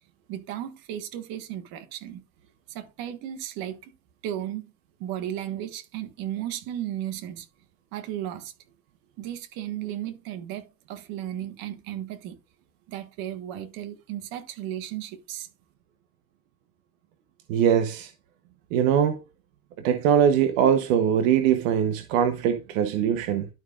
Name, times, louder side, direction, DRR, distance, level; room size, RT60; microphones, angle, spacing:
voice 1, 0.3-2.2 2.7-3.9 4.2-4.6 5.0-7.5 7.9-8.5 9.2-12.4 12.9-15.5, right 11 dB, 65° right, 1.4 m, -35 dB
voice 2, 17.5-18.1 18.7-19.2 19.8-23.5, right 9 dB, 85° right, 1.0 m, -22 dB
12.0 x 4.9 x 2.4 m
supercardioid pair, 115°, 38 cm